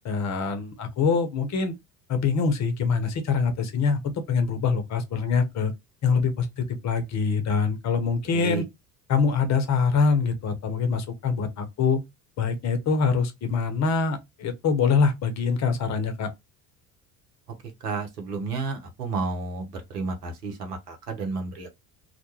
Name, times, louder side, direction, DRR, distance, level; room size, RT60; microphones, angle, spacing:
voice 1, 0.0-1.7 2.1-5.7 6.0-8.6 9.1-12.0 12.4-16.3, left 5 dB, 35° left, 0.7 m, -24 dB
voice 2, 17.8-21.7, right 4 dB, 90° right, 0.7 m, -31 dB
2.2 x 2.1 x 2.9 m
hypercardioid pair, 65°, 46 cm